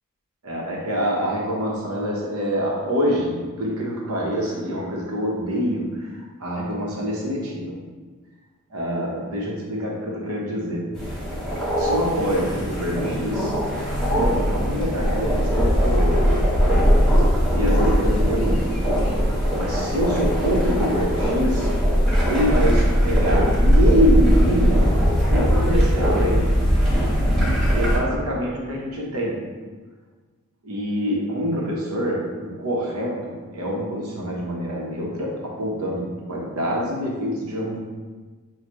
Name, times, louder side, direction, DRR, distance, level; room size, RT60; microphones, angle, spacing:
voice 1, 0.4-6.1 6.4-7.8 8.7-10.9 11.8-13.5 14.0-17.1 17.5-18.7 19.5-21.7 22.3-25.0 25.3-26.6 27.7-29.4 30.6-37.8, equal, 85° right, -3 dB, 1.0 m, -25 dB
sound 1, 11.0-28.0, equal, ahead, 1.4 m, -20 dB
6.3 x 2.4 x 3.0 m, 1.4 s
head